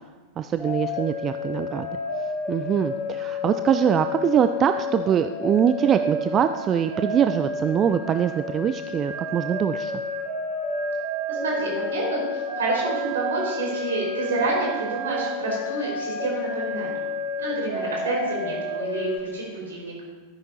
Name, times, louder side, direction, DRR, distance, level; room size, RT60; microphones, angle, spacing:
voice 1, 0.4-2.0 2.5-10.0, right 8 dB, 30° right, 9 dB, 0.3 m, -23 dB
sound 1, 0.6-19.2, left 2 dB, 5° left, 3.6 m, -31 dB
voice 2, 11.4-17.0 17.4-19.9, right 3 dB, 65° right, -3 dB, 3.7 m, -28 dB
13.0 x 9.8 x 2.8 m, 1.3 s
figure-of-eight pair, 90°, 0 cm